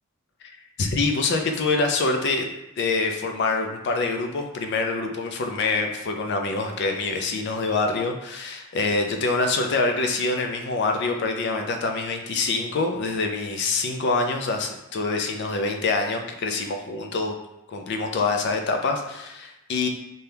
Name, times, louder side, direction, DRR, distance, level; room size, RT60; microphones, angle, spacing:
voice 1, 0.8-2.5 2.8-17.3 17.7-19.9, left 3 dB, 50° left, 4 dB, 0.3 m, -25 dB
2.7 x 2.2 x 3.3 m, 0.89 s
head